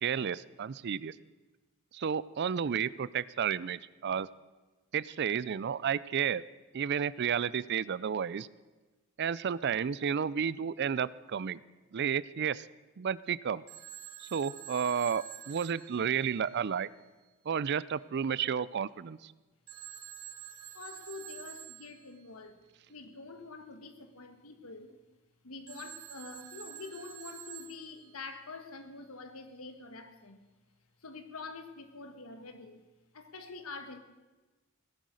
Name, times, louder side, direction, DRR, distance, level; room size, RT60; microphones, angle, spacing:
voice 1, 0.0-1.1 1.9-4.3 4.9-6.4 6.7-8.5 9.2-11.6 11.9-12.7 13.0-13.6 14.2-16.9 17.5-19.3, right 7 dB, 50° right, 0.4 m, -32 dB
Telephone, 13.7-16.8 19.7-22.2 25.7-28.3, right 11 dB, 90° right, 2.3 m, -48 dB
voice 2, 20.7-22.5 22.9-25.0 25.4-30.4 31.0-32.8 33.1-34.0, left 3 dB, 80° left, 1.5 m, -46 dB
17.5 x 10.5 x 6.4 m
head